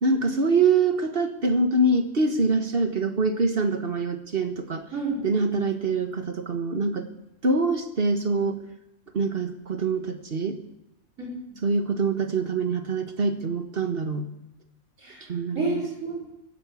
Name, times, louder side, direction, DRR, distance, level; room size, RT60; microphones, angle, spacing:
voice 1, 0.0-4.8 5.2-7.1 7.4-8.6 9.1-10.6 11.6-14.3 15.3-15.6, right 3 dB, 45° right, 7 dB, 1.5 m, -24 dB
voice 2, 4.9-5.3 11.2-11.6 15.0-16.2, right 2 dB, 70° right, -3 dB, 5.0 m, -31 dB
15.5 x 11.0 x 8.3 m, 0.86 s
omnidirectional pair, 1.5 m